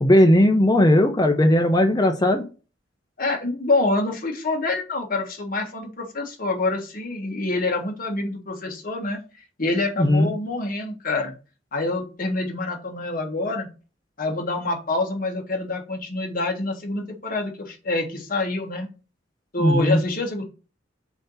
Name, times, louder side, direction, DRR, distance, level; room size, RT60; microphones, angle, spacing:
voice 1, 0.0-2.4 10.0-10.3 19.6-20.0, left 1 dB, 20° left, 5 dB, 0.6 m, -17 dB
voice 2, 3.2-9.2 9.6-11.3 11.7-13.7 14.2-18.9 19.5-20.4, left 2 dB, 50° left, 1 dB, 1.6 m, -26 dB
6.9 x 2.9 x 5.6 m, 0.34 s
head